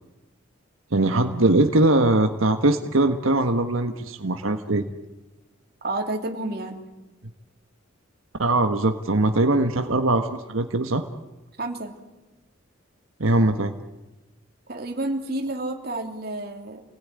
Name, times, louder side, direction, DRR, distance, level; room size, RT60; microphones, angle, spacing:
voice 1, 0.9-4.8 8.4-11.0 13.2-13.7, right 2 dB, 85° right, 6 dB, 1.4 m, -21 dB
voice 2, 5.8-6.9 11.6-12.0 14.7-16.8, right 2 dB, 50° right, 3 dB, 3.1 m, -30 dB
28.5 x 19.0 x 9.7 m, 1.1 s
head